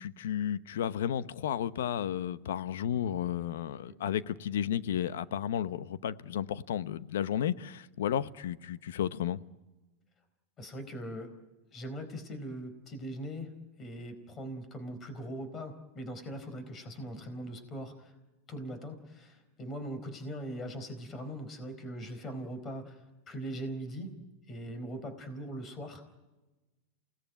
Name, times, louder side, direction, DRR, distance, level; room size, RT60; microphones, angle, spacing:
voice 1, 0.0-9.4, left 10 dB, 80° left, 0.9 m, -33 dB
voice 2, 10.6-11.3 11.7-13.5 13.8-18.2 18.5-24.2 24.5-26.0, right 1 dB, 30° left, 4.4 m, -41 dB
28.5 x 19.0 x 9.2 m
hypercardioid pair, 115°, 0 cm